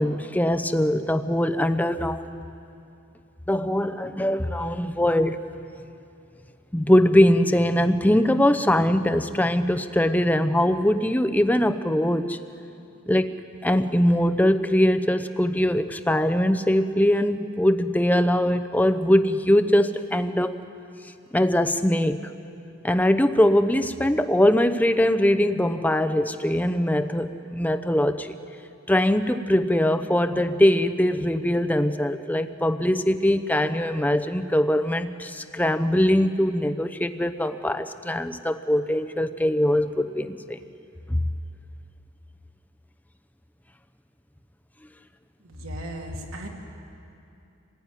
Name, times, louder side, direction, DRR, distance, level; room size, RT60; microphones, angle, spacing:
voice 1, 0.0-2.4 3.5-5.4 6.7-12.4 13.1-13.4 13.6-20.5 21.3-22.3 22.8-28.3 28.9-40.6 41.1-41.2, left 1 dB, 5° left, 9 dB, 0.7 m, -22 dB
voice 2, 45.4-46.5, equal, 70° right, 1 dB, 2.8 m, -35 dB
27.0 x 20.0 x 9.8 m, 2.7 s
head